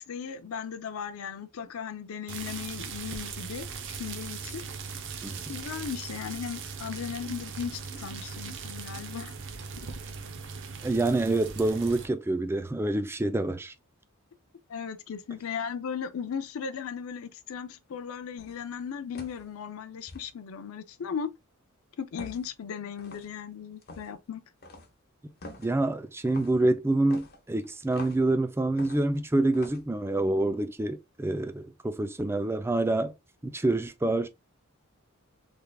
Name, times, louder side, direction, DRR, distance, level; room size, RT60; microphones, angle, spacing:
voice 1, 0.0-4.8 5.5-9.3 14.7-21.3 22.0-24.4, left 7 dB, 65° left, 0.4 m, -37 dB
sound 1, 2.3-12.1, right 5 dB, 55° right, 0.7 m, -39 dB
voice 2, 10.8-13.7 25.6-33.1 33.4-34.3, right 2 dB, 10° right, 0.4 m, -27 dB
sound 2, 18.4-18.7 19.1-19.5 20.1-20.3 22.2-22.5 23.0-23.3 23.8-24.1 24.6-24.9 25.4-25.7 26.2-26.6 27.1-28.3 28.8-29.2 29.5-29.8, left 2 dB, 45° left, 1.0 m, -46 dB
3.5 x 3.4 x 2.2 m
head